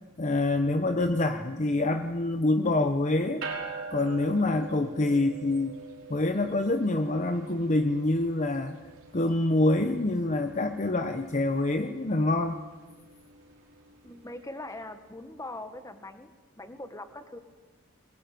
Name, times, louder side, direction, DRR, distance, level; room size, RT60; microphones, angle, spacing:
voice 1, 0.2-3.5 3.9-5.7 6.1-8.8 9.1-12.6, left 2 dB, 35° left, 7 dB, 0.8 m, -26 dB
sound 1, 3.4-15.0, right 4 dB, 65° right, 4.8 m, -45 dB
voice 2, 14.0-17.4, left 1 dB, 15° left, 8 dB, 1.6 m, -42 dB
21.5 x 20.5 x 9.4 m, 1.3 s
head